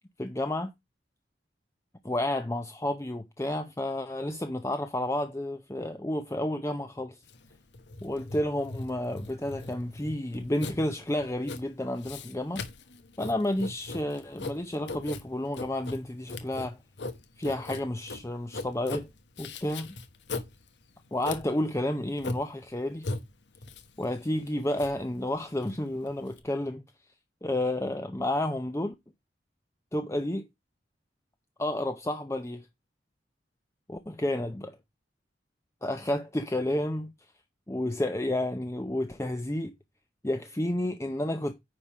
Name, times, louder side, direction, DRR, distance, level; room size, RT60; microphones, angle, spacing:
voice 1, 0.2-0.7 2.0-7.2 8.0-12.6 13.2-16.8 17.4-19.1 19.4-19.9 21.1-23.1 24.0-26.8 27.4-28.9 29.9-30.4 31.6-32.7 33.9-34.8 35.8-37.1 37.7-39.7 40.2-41.5, left 1 dB, 15° left, 0.6 m, -31 dB
Writing, 7.2-26.4, left 3 dB, 85° left, 1.3 m, -40 dB
9.6 x 3.6 x 6.0 m
head